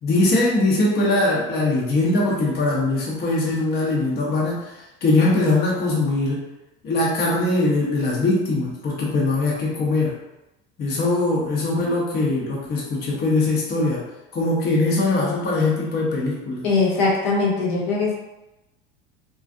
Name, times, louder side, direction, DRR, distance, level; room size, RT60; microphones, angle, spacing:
voice 1, 0.0-4.7 5.0-6.4 6.8-10.1 10.8-14.0 14.3-16.7, left 2 dB, 35° left, -4 dB, 0.7 m, -21 dB
voice 2, 16.6-18.2, left 3 dB, 60° left, -4 dB, 0.9 m, -21 dB
2.4 x 2.3 x 2.5 m, 0.96 s
hypercardioid pair, 80°, 30 cm